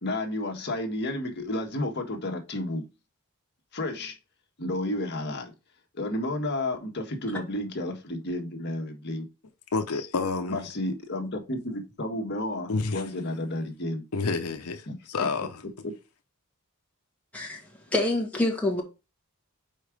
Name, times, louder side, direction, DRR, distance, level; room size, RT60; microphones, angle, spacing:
voice 1, 0.0-2.8 3.7-4.1 4.6-5.5 5.9-9.3 10.5-14.0 14.9-15.0, left 1 dB, 50° left, 1.5 m, -31 dB
voice 2, 9.7-10.6 12.7-13.0 14.1-15.6, left 4 dB, 85° left, 0.8 m, -29 dB
voice 3, 17.9-18.8, left 1 dB, 5° left, 1.6 m, -26 dB
5.3 x 4.8 x 5.0 m
head